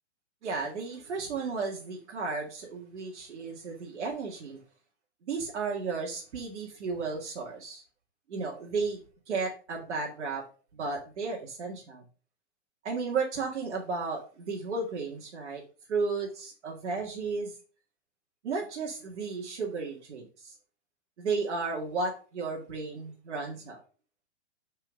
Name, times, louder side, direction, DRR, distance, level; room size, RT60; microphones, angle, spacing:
voice 1, 0.4-4.6 5.3-7.8 8.3-9.0 9.3-10.4 10.7-12.0 12.8-15.6 15.9-17.5 18.4-20.5 21.2-23.8, right 4 dB, 80° right, -1 dB, 2.0 m, -34 dB
5.9 x 4.5 x 5.3 m, 0.37 s
hypercardioid pair, 150°, 34 cm